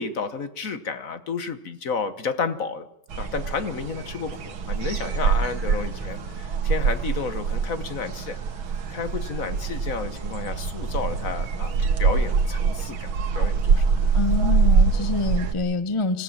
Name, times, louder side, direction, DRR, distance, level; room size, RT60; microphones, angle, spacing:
voice 1, 0.0-2.9 3.2-8.4 8.9-14.1, left 5 dB, 45° left, 11 dB, 1.3 m, -31 dB
sound 1, 3.1-15.5, right 5 dB, 80° right, 2.2 m, -24 dB
sound 2, 5.4-14.9, left 1 dB, 80° left, 6.1 m, -50 dB
voice 2, 14.1-16.2, left 3 dB, 30° left, 12 dB, 0.6 m, -26 dB
25.5 x 16.0 x 7.3 m, 0.73 s
omnidirectional pair, 2.2 m